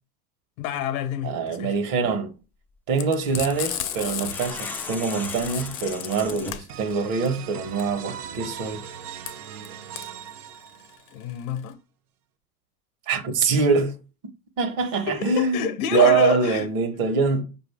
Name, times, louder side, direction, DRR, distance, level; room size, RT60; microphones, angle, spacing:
voice 1, 0.6-1.8 11.1-11.8 15.1-16.7, left 9 dB, 70° left, 0.9 m, -28 dB
voice 2, 1.2-2.3 2.9-8.8 13.1-14.0 14.6-17.4, right 4 dB, 50° right, 1.1 m, -24 dB
Frying (food), 3.0-11.7, left 12 dB, 45° left, 0.6 m, -34 dB
sound 1, 3.1-6.8, left 2 dB, 5° left, 0.3 m, -38 dB
sound 2, 6.7-11.3, right 9 dB, 85° right, 0.6 m, -39 dB
5.0 x 2.6 x 3.3 m
hypercardioid pair, 95°, 44 cm